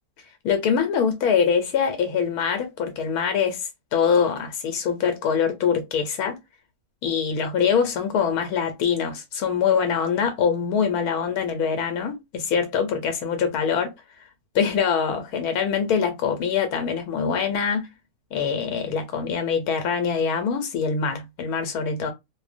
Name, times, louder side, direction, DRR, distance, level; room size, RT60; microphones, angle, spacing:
voice 1, 0.4-6.4 7.0-13.9 14.5-17.9 18.3-22.1, left 6 dB, 85° left, 1.1 m, -24 dB
2.5 x 2.1 x 2.4 m
omnidirectional pair, 1.6 m